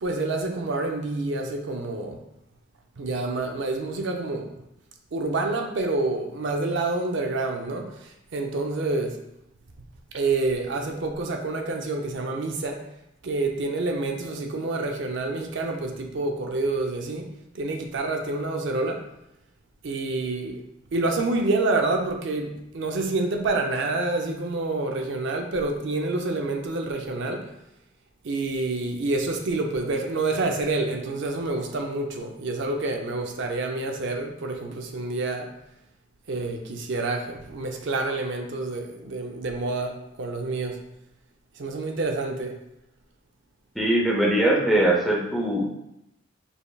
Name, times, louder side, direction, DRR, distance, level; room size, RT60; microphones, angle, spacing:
voice 1, 0.0-2.2 3.0-4.5 5.1-9.2 10.1-12.9 13.2-17.3 17.5-19.0 19.8-20.6 20.9-27.5 28.2-35.5 36.3-40.8 41.6-42.5, right 2 dB, 65° right, 3 dB, 0.5 m, -28 dB
voice 2, 43.8-45.7, right 1 dB, ahead, -3 dB, 0.6 m, -21 dB
5.4 x 3.2 x 2.3 m, 0.83 s
head